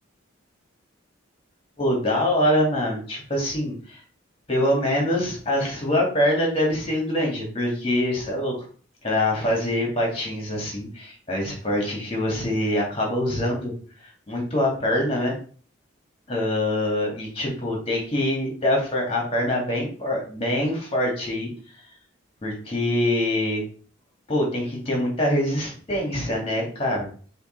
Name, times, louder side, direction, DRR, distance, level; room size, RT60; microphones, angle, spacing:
voice 1, 1.8-4.0 4.5-8.6 9.0-13.7 14.3-15.3 16.3-21.5 22.4-23.6 24.3-27.1, left 1 dB, 30° left, -1 dB, 2.4 m, -24 dB
5.8 x 3.4 x 5.2 m, 0.43 s
head